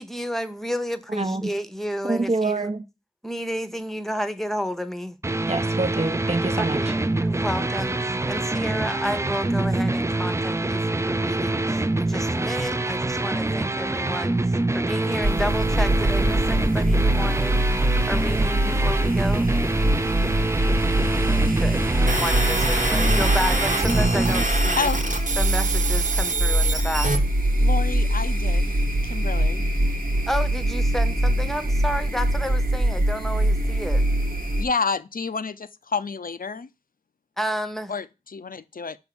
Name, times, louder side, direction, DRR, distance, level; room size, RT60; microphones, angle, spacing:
voice 1, 0.0-2.7 3.2-5.2 6.6-6.9 7.2-17.6 18.1-19.6 21.6-24.9 25.4-27.1 30.3-34.0 37.4-37.9, equal, ahead, 0.8 m, -31 dB
voice 2, 1.1-1.5 2.0-2.8 5.5-6.9, right 3 dB, 45° right, 0.8 m, -26 dB
sound 1, 5.2-24.4, right 2 dB, 20° right, 0.4 m, -25 dB
sound 2, 15.2-34.6, right 1 dB, 90° right, 1.3 m, -23 dB
sound 3, 22.1-27.2, right 3 dB, 65° right, 1.2 m, -26 dB
voice 3, 27.6-28.7 29.1-29.6 34.6-36.7 37.9-39.0, left 4 dB, 75° left, 0.5 m, -29 dB
6.2 x 3.6 x 5.9 m
wide cardioid pair, 45°, 15 cm